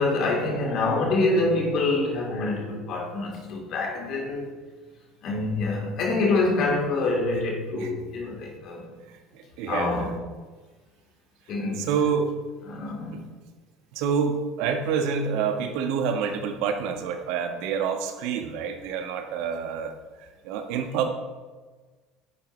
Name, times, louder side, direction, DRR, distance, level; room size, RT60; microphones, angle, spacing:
voice 1, 0.0-4.5 5.2-8.8 9.7-10.1 11.5-11.9 12.7-13.3, left 2 dB, 55° left, -1 dB, 3.5 m, -26 dB
voice 2, 9.3-10.0 11.8-12.3 13.1-13.2 13.9-19.9 20.2-21.1, right 6 dB, 65° right, 5 dB, 1.3 m, -27 dB
11.0 x 9.6 x 3.2 m, 1.3 s
hypercardioid pair, 65°, 0 cm